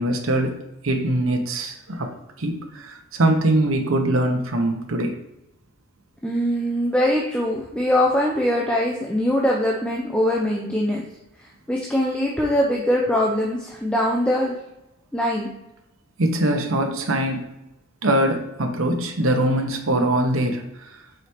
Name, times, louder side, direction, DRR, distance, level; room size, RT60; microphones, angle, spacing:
voice 1, 0.0-5.2 16.2-17.6 18.0-21.0, right 1 dB, 90° right, 4 dB, 1.0 m, -23 dB
voice 2, 6.2-11.0 11.7-14.6 15.1-15.5, left 1 dB, 5° left, -2 dB, 0.7 m, -22 dB
5.0 x 4.6 x 4.4 m, 0.91 s
head